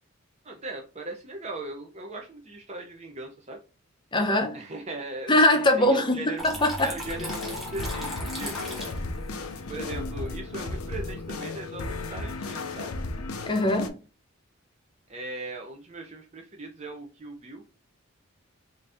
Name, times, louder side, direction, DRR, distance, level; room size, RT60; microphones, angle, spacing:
voice 1, 0.4-3.6 4.5-6.4 6.8-8.9 9.7-13.0 15.1-17.6, right 2 dB, 30° right, 0.6 m, -39 dB
voice 2, 4.1-4.6 5.3-6.9 13.5-13.9, left 1 dB, 20° left, 0.6 m, -22 dB
Water tap faucet / Trickle dribble, 6.4-11.4, equal, ahead, 1.0 m, -39 dB
sound 1, 7.0-13.9, left 3 dB, 85° left, 0.6 m, -35 dB
3.9 x 2.6 x 3.4 m
head